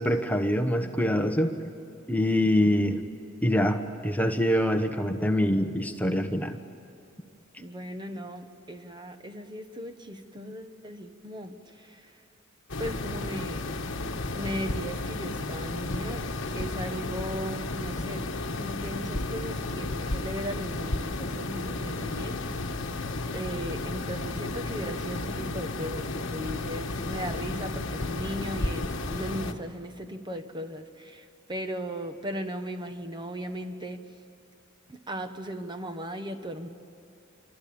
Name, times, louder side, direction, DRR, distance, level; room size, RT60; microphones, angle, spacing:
voice 1, 0.0-1.6 2.1-3.0 3.4-6.6, left 1 dB, 10° left, 6 dB, 1.1 m, -25 dB
voice 2, 7.6-12.2 12.8-13.7 14.3-16.3 16.5-18.3 18.6-22.4 23.3-34.1 34.9-36.7, equal, 20° right, 7 dB, 1.1 m, -37 dB
sound 1, 12.7-29.5, left 2 dB, 60° left, 1.4 m, -33 dB
26.5 x 24.0 x 8.7 m, 2.6 s
head